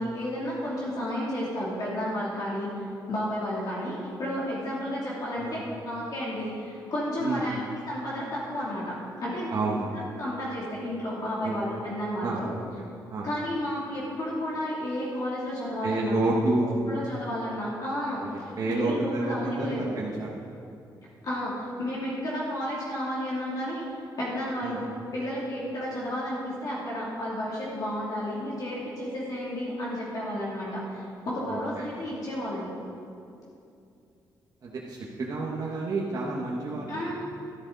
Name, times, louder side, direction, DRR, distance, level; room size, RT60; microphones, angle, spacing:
voice 1, 0.0-2.7 3.1-5.6 5.8-7.6 7.9-9.5 9.9-12.5 13.2-16.3 16.9-19.8 21.2-23.8 24.2-24.9 25.1-32.7 36.9-37.1, equal, 55° left, -7 dB, 2.8 m, -32 dB
voice 2, 7.2-7.6 9.5-9.9 11.4-11.6 12.2-12.6 13.1-13.3 15.8-17.0 18.6-20.5 24.6-24.8 31.5-31.8 34.6-37.1, right 2 dB, 55° right, -4 dB, 1.3 m, -29 dB
13.0 x 10.5 x 4.0 m, 2.6 s
cardioid pair, 110°, 8 cm